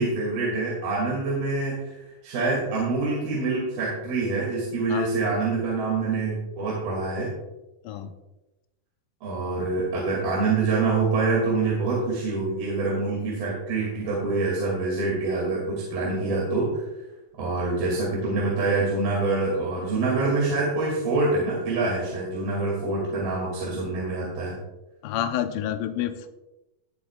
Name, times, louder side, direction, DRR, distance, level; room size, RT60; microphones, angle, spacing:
voice 1, 0.0-7.3 9.2-16.8 17.4-24.6, right 3 dB, 75° right, -5 dB, 4.3 m, -26 dB
voice 2, 4.9-5.3 7.8-8.1 25.0-26.3, left 10 dB, 75° left, 7 dB, 2.2 m, -29 dB
17.5 x 8.1 x 2.4 m, 1.0 s
omnidirectional pair, 4.3 m